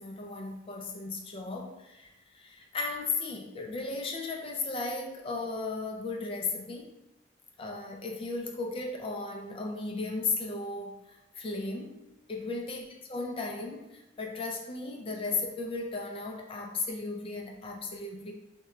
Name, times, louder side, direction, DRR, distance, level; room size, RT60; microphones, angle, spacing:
voice 1, 0.0-7.0 7.6-12.0 12.3-18.3, left 3 dB, 30° left, 3 dB, 0.3 m, -35 dB
3.0 x 2.2 x 3.6 m, 0.96 s
head